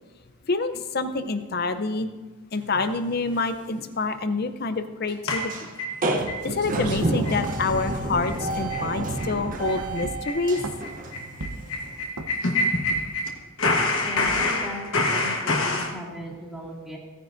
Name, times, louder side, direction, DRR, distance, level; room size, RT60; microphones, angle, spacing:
voice 1, 0.5-2.1 2.5-5.7 6.4-10.6, left 3 dB, 45° left, 10 dB, 0.6 m, -27 dB
sound 1, 2.7-3.0 3.3-3.4 3.8-3.9 5.3-5.7 6.0-12.1, right 2 dB, 35° right, 0.8 m, -30 dB
sound 2, 5.3-6.4 6.8-6.9 7.2-7.5 7.8-7.9 8.2-8.4 8.7-8.9 9.2-9.3 9.7-13.3 13.6-15.9, left 2 dB, 65° left, 1.3 m, -26 dB
sound 3, 6.1-6.2 6.4-9.0 9.4-9.7 10.0-11.0 11.4-11.8 12.1-12.5 12.9-13.3 13.7-13.9 14.3-14.6, right 2 dB, 90° right, 0.8 m, -37 dB
voice 2, 14.0-14.9 15.1-17.0, equal, ahead, -5 dB, 2.2 m, -37 dB
16.5 x 9.8 x 2.6 m, 1.3 s
head